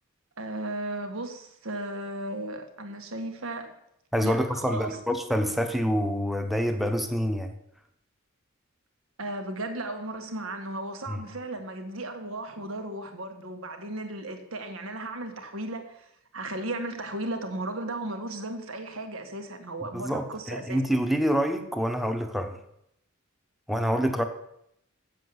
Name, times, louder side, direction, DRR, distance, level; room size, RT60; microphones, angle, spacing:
voice 1, 0.4-3.8 4.2-5.0 9.2-20.8, right 1 dB, 75° right, 6 dB, 1.7 m, -35 dB
voice 2, 4.1-7.5 11.1-11.2 19.9-22.6 23.7-24.2, equal, ahead, 6 dB, 1.0 m, -27 dB
7.5 x 7.4 x 7.9 m, 0.77 s
head